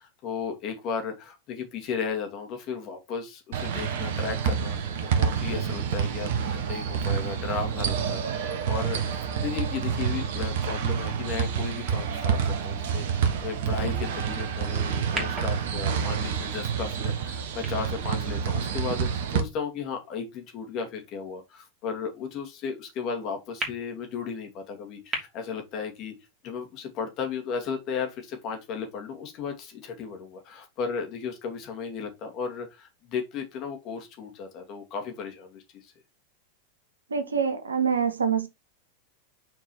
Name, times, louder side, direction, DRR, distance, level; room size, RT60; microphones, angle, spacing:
voice 1, 0.0-26.1 26.4-35.9, left 6 dB, 35° left, 2.3 m, -35 dB
sound 1, 3.5-19.4, right 7 dB, 55° right, 1.2 m, -28 dB
sound 2, 20.1-20.2 23.6-23.7 25.1-25.2, right 2 dB, 25° right, 2.9 m, -38 dB
voice 2, 37.1-38.5, right 6 dB, 75° right, 1.3 m, -25 dB
6.0 x 4.6 x 4.4 m
figure-of-eight pair, 90°, 0 cm